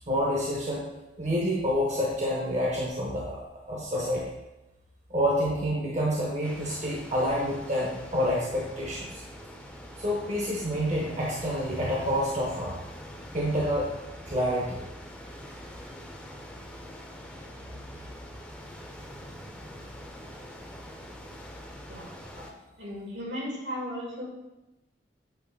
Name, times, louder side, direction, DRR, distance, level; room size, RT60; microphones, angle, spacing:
voice 1, 0.1-0.9 1.2-3.4 3.7-4.2 5.1-9.1 10.0-12.8 13.3-13.9 14.3-14.8 22.4-22.5, equal, 40° right, -4 dB, 1.1 m, -28 dB
sound 1, 6.4-22.5, equal, 5° left, 0.7 m, -44 dB
voice 2, 22.8-24.2, equal, 70° right, -3 dB, 2.5 m, -35 dB
8.4 x 3.2 x 5.5 m, 0.97 s
head